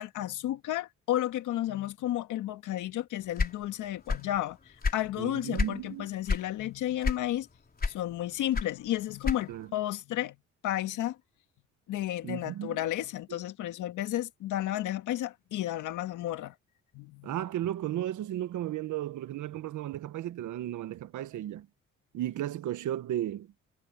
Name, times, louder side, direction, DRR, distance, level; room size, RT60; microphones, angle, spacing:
voice 1, 0.0-7.5 7.9-10.4 10.6-11.2 11.9-16.5 16.9-17.3, left 13 dB, 85° left, 1.8 m, -32 dB
sound 1, 3.3-4.4 4.7-5.8 6.3-6.5 7.0-7.5 7.8-9.7, left 4 dB, 30° left, 3.7 m, -29 dB
voice 2, 5.2-6.1 9.5-9.7 12.2-12.8 13.3-13.4 17.2-21.7 22.1-23.5, right 12 dB, 75° right, 1.4 m, -34 dB
cardioid pair, 90°, 30 cm